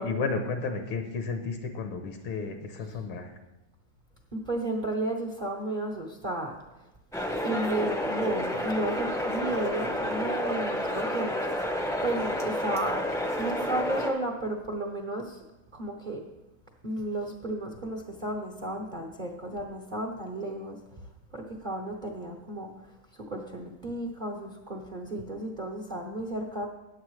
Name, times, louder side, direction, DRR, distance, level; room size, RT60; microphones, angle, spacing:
voice 1, 0.0-3.3, left 4 dB, 80° left, 5 dB, 1.8 m, -32 dB
voice 2, 4.3-6.8 7.4-11.5 12.0-13.1 13.4-15.4 15.7-16.2 16.8-21.0 21.3-26.7, right 1 dB, 60° right, 2 dB, 0.5 m, -33 dB
sound 1, 7.1-14.1, left 1 dB, 5° left, 0.4 m, -30 dB
15.0 x 9.2 x 3.2 m, 1.0 s
omnidirectional pair, 2.3 m